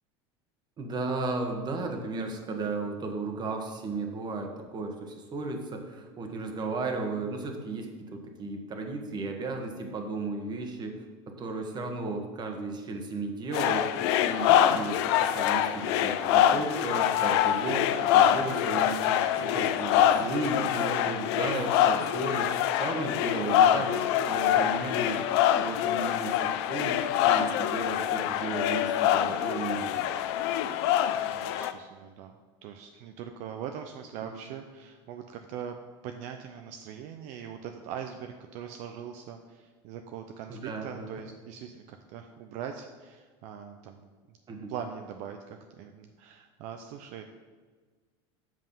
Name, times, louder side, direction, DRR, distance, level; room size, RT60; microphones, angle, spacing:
voice 1, 0.8-10.9 11.3-13.8 14.2-30.0 34.2-34.4 40.5-41.1 44.5-44.7, right 3 dB, 30° right, 3 dB, 1.4 m, -35 dB
sound 1, 13.5-31.7, left 10 dB, 75° left, 0.5 m, -25 dB
voice 2, 19.3-19.7 29.4-29.7 31.1-32.3 32.6-35.8 36.0-44.1 44.7-47.3, right 8 dB, 60° right, 5 dB, 0.6 m, -41 dB
7.6 x 5.4 x 5.5 m, 1.4 s
supercardioid pair, 120°, 14 cm